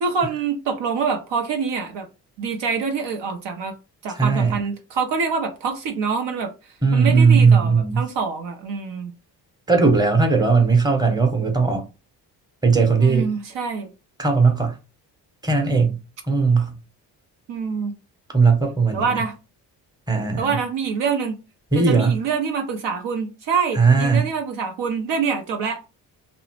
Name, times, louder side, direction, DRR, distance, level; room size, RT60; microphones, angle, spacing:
voice 1, 0.0-2.1 2.4-3.7 4.0-9.1 13.0-13.9 17.5-17.9 18.9-19.3 20.1-21.4 21.7-25.8, right 5 dB, 60° right, 0.7 m, -25 dB
voice 2, 4.2-4.6 6.8-8.1 9.7-11.8 12.6-13.3 14.2-14.8 15.4-16.0 16.3-16.8 18.3-19.2 20.1-20.5 21.7-22.2 23.7-24.3, right 4 dB, 10° right, 0.9 m, -18 dB
2.7 x 2.0 x 2.9 m
hypercardioid pair, 45°, 50 cm